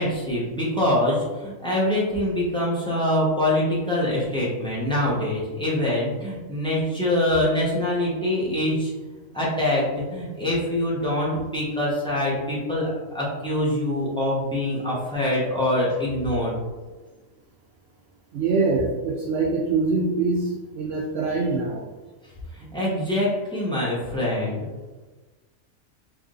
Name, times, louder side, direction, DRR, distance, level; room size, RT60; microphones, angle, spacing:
voice 1, 0.0-8.9 9.3-16.5 22.5-24.6, left 1 dB, 5° left, -6 dB, 0.9 m, -24 dB
voice 2, 18.3-20.5 20.8-21.9, right 3 dB, 65° right, 0 dB, 0.6 m, -24 dB
3.5 x 3.0 x 3.8 m, 1.2 s
omnidirectional pair, 1.5 m